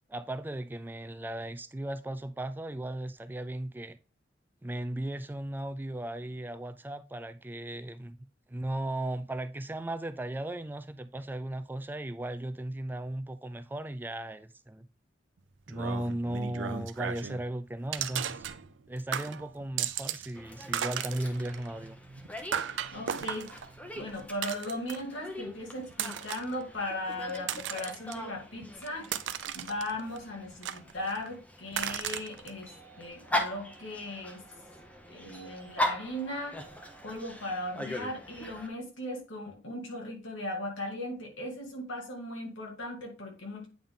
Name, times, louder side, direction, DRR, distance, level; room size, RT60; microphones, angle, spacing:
voice 1, 0.1-4.0 4.6-8.2 8.5-14.9 15.7-18.5 18.9-22.0, right 1 dB, 10° right, 0.3 m, -36 dB
sound 1, 15.7-17.4 17.9-18.9 19.1-20.3 20.6-25.2 25.9-26.5 27.1-28.1 28.6-30.2 30.6-31.3 31.7-32.5, right 9 dB, 70° right, 0.5 m, -36 dB
Dog, 20.4-38.7, left 1 dB, 10° left, 0.8 m, -40 dB
voice 2, 22.9-23.5 24.0-29.1 29.5-34.4 35.1-36.6 37.0-43.7, left 1 dB, 90° left, 2.1 m, -37 dB
8.6 x 3.7 x 3.7 m
head